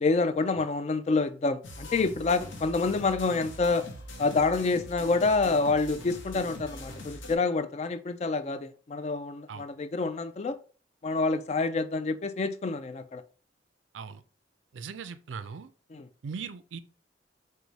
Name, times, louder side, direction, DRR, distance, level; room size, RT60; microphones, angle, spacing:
voice 1, 0.0-3.9 4.2-10.6 11.0-13.2 15.9-16.1, left 3 dB, 35° left, 0.3 m, -27 dB
sound 1, 1.6-7.4, left 1 dB, 90° left, 0.8 m, -42 dB
voice 2, 14.7-15.7 16.2-16.8, right 5 dB, 85° right, 0.4 m, -39 dB
4.6 x 2.1 x 4.0 m
head